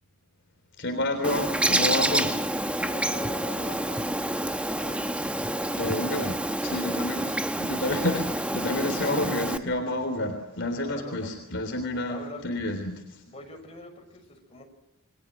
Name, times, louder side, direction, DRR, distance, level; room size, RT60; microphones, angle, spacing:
voice 1, 0.8-2.5 5.7-6.3 6.6-13.2, left 1 dB, 55° left, 5 dB, 3.6 m, -29 dB
Bird, 1.2-9.6, right 1 dB, 5° right, 1.1 m, -28 dB
voice 2, 2.8-6.1 6.6-7.3 10.8-11.3 12.0-12.6 13.2-14.6, left 1 dB, 25° left, 3 dB, 6.7 m, -43 dB
29.0 x 23.0 x 7.5 m, 0.90 s
head